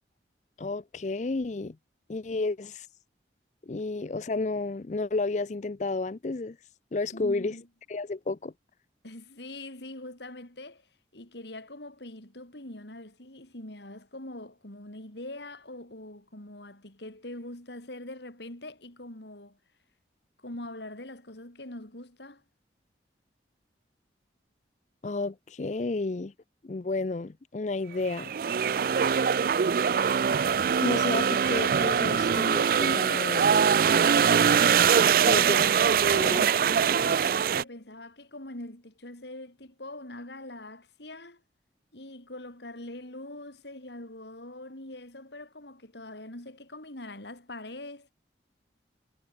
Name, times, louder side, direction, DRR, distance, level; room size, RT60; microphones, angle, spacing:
voice 1, 0.6-1.8 2.1-2.9 3.6-6.6 6.9-7.5 7.9-8.5 25.0-26.3 26.6-28.3 30.8-33.6 35.2-35.7 36.1-36.4, left 3 dB, 40° left, 0.5 m, -31 dB
voice 2, 7.1-7.6 9.0-10.9 11.1-19.6 20.4-22.4 35.3-35.8 36.1-41.4 41.9-48.1, left 1 dB, 70° left, 4.0 m, -43 dB
sound 1, 28.1-37.6, right 7 dB, 50° right, 0.3 m, -23 dB
head